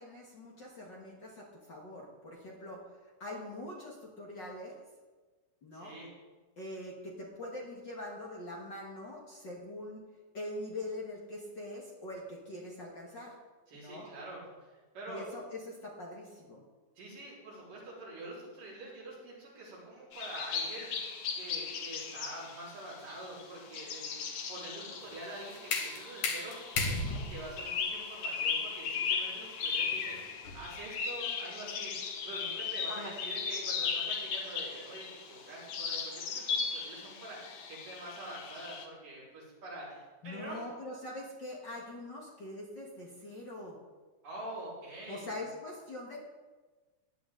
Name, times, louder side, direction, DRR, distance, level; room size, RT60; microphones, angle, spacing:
voice 1, 0.0-2.8 3.2-4.8 5.6-6.0 6.6-10.0 10.3-13.4 13.7-14.1 15.1-16.6 32.9-33.1 40.2-43.8 45.1-46.2, left 1 dB, 40° left, -2 dB, 1.9 m, -43 dB
voice 2, 5.7-6.1 13.7-15.3 17.0-20.9 21.3-24.1 24.5-30.2 30.5-31.9 32.2-40.7 44.2-45.5, right 1 dB, 80° right, -7 dB, 6.1 m, -46 dB
sound 1, 20.1-38.9, left 6 dB, 65° left, 2.3 m, -37 dB
sound 2, 25.0-30.8, left 3 dB, 90° left, 3.4 m, -37 dB
16.0 x 10.5 x 3.9 m, 1.3 s
omnidirectional pair, 3.8 m